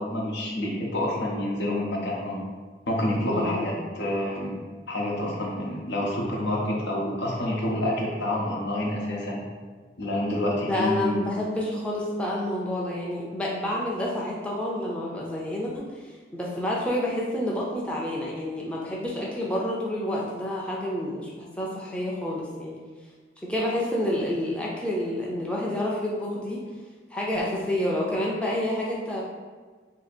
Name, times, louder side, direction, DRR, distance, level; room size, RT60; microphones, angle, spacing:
voice 1, 0.0-2.4 2.9-4.5 4.9-9.4 10.0-11.1, left 1 dB, 80° left, -2 dB, 0.8 m, -28 dB
voice 2, 3.3-3.6 10.7-22.7 23.4-26.6 27.1-29.2, left 1 dB, 5° left, -5 dB, 0.4 m, -29 dB
2.7 x 2.7 x 4.1 m, 1.4 s
head